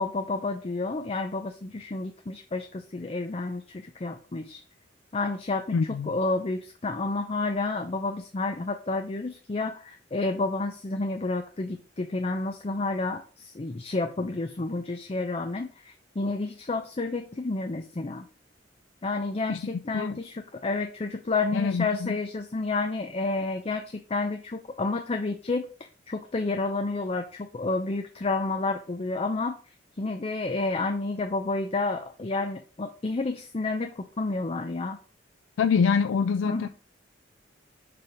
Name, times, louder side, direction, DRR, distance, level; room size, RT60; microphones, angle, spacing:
voice 1, 0.0-4.6 5.1-18.3 19.0-29.6 30.0-35.0 36.4-36.7, left 3 dB, 30° left, 0.5 m, -30 dB
voice 2, 5.7-6.1 19.5-19.6 19.9-20.2 21.5-22.1 35.6-36.7, left 5 dB, 85° left, 0.3 m, -25 dB
6.8 x 3.4 x 5.9 m
head